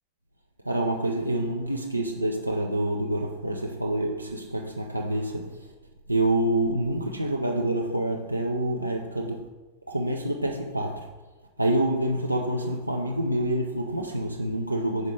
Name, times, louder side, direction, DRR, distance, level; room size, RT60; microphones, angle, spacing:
voice 1, 0.6-5.7 6.1-9.5 9.9-11.1 11.6-15.1, right 1 dB, 85° right, 0.4 m, -27 dB
5.3 x 4.8 x 4.6 m
figure-of-eight pair, 90°, 0 cm